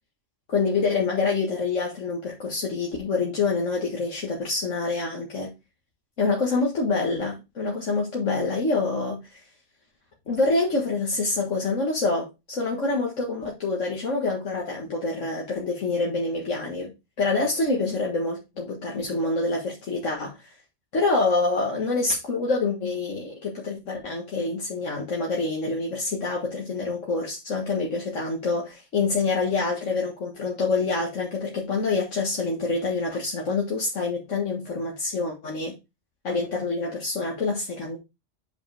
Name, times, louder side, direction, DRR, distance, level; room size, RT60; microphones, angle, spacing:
voice 1, 0.5-5.5 6.2-9.2 10.3-16.9 17.2-20.4 20.9-35.8 36.2-38.0, left 3 dB, 75° left, 2.0 m, -26 dB
8.1 x 5.2 x 3.4 m
omnidirectional pair, 1.3 m